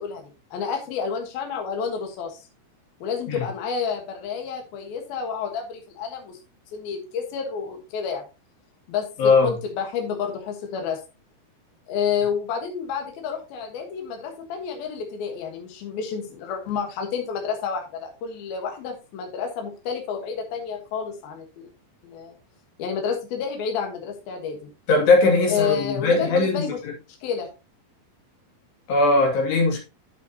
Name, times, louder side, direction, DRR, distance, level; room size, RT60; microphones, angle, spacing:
voice 1, 0.0-2.5 3.0-6.4 6.7-8.2 8.9-11.0 11.9-21.7 22.0-22.4 22.8-24.7 25.5-26.8 27.2-27.5, left 6 dB, 70° left, 3.2 m, -30 dB
voice 2, 9.2-9.6 24.9-26.9 28.9-29.8, left 3 dB, 90° left, 4.7 m, -19 dB
9.6 x 8.5 x 2.9 m
omnidirectional pair, 4.7 m